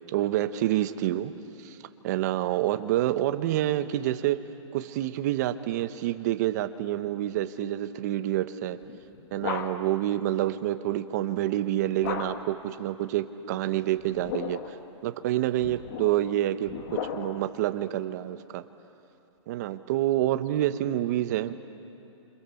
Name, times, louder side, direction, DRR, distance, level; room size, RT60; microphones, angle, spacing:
voice 1, 0.1-1.3 1.6-1.8 2.0-4.4 4.7-8.8 9.3-14.6 15.0-18.6 19.5-21.5, right 13 dB, 35° right, 10 dB, 1.0 m, -27 dB
sound 1, 8.9-10.0 12.0-12.6 14.0-14.8 15.6-17.6, left 7 dB, 40° left, 1.9 m, -36 dB
28.0 x 27.5 x 7.1 m, 2.8 s
hypercardioid pair, 165°, 17 cm